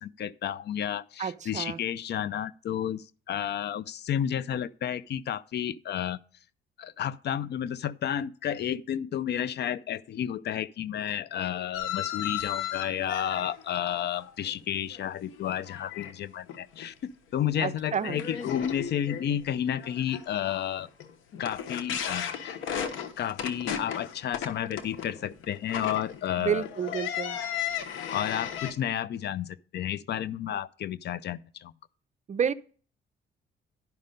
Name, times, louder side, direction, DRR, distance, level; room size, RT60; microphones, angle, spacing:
voice 1, 0.0-6.2 6.8-20.9 21.4-22.6 23.2-26.7 28.1-31.7, left 10 dB, 60° left, 0.5 m, -31 dB
voice 2, 1.2-1.8 17.6-18.2 26.4-27.4 32.3-32.5, right 7 dB, 35° right, 0.5 m, -30 dB
sound 1, 11.7-15.1 15.4-16.1 16.5-16.9 17.3-17.4 17.9-28.7, left 9 dB, 85° left, 1.1 m, -35 dB
10.5 x 5.5 x 5.2 m
cardioid pair, 90°, 20 cm